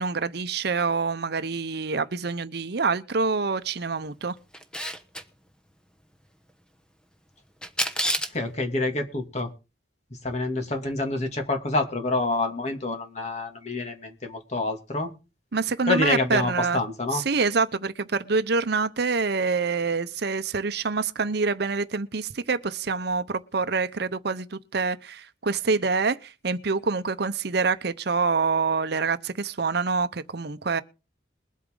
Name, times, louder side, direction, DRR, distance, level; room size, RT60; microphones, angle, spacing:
voice 1, 0.0-4.4 15.5-16.8 17.1-30.8, right 4 dB, 60° right, 0.8 m, -26 dB
Camera, 4.5-5.2 7.6-8.4, equal, 5° left, 1.0 m, -28 dB
voice 2, 8.3-9.5 10.2-15.1 15.9-17.2, left 2 dB, 40° left, 2.6 m, -27 dB
21.5 x 8.4 x 3.9 m
head